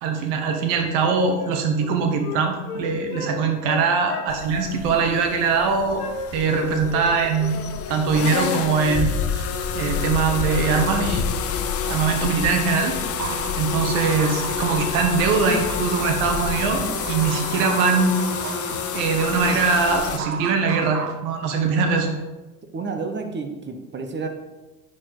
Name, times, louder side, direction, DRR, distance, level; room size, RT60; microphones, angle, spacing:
voice 1, 0.0-6.0 6.3-7.6 7.9-9.4 9.7-11.3 11.9-12.9 13.6-18.2 18.9-22.1, right 5 dB, 60° right, 4 dB, 1.5 m, -22 dB
Wind instrument woodwind instrument, 1.4-3.3 3.6-4.7 5.1-5.7 6.0-6.6 6.9-7.1 7.4-8.0 8.3-8.5, left 4 dB, 80° left, 1.3 m, -35 dB
sound 1, 4.3-20.2, left 7 dB, 30° left, 0.9 m, -28 dB
sound 2, 13.2-21.2, right 7 dB, 75° right, 1.0 m, -34 dB
voice 2, 22.7-24.3, right 4 dB, 25° right, 6 dB, 1.2 m, -30 dB
9.8 x 4.6 x 4.8 m, 1.1 s
hypercardioid pair, 80°, 45 cm